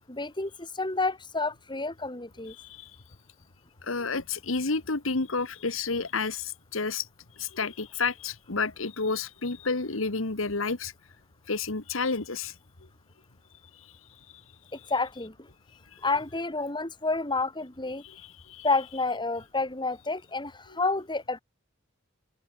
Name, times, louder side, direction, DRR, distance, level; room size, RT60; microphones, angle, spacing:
voice 1, 0.1-2.5 14.7-15.5 16.0-18.0 18.6-21.4, left 3 dB, 20° left, 3.2 m, -30 dB
voice 2, 2.5-2.9 3.8-7.1 7.4-10.9 11.5-12.5 13.7-13.9 18.0-18.7, left 4 dB, 75° left, 1.6 m, -30 dB
open air
head